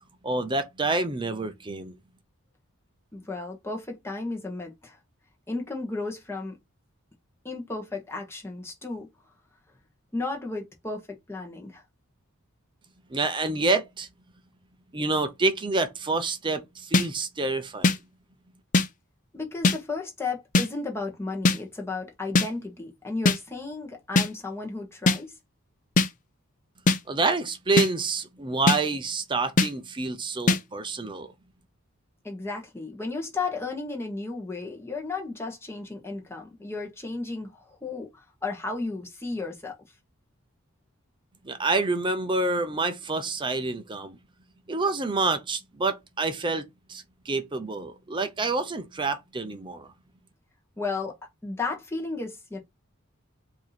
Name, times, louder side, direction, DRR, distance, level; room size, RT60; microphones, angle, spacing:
voice 1, 0.2-2.0 13.1-14.1 14.9-17.9 27.1-31.3 41.4-44.2 44.7-46.6 46.9-49.9, right 3 dB, 20° right, 0.6 m, -27 dB
voice 2, 3.1-5.0 5.5-6.6 7.4-9.1 10.1-11.8 19.3-25.3 32.2-38.1 38.4-39.8 50.8-51.2 51.4-52.6, left 3 dB, 10° left, 1.2 m, -34 dB
sound 1, 16.9-17.1 17.8-18.0 18.7-18.9 19.6-19.8 20.5-20.7 21.5-21.6 22.4-22.5 23.3-23.4 24.2-24.3 25.1-25.2 26.0-26.1 26.9-27.0 27.8-27.9 28.7-28.8 29.6-29.7 30.5-30.6, left 3 dB, 35° left, 0.5 m, -20 dB
4.7 x 2.8 x 4.1 m
head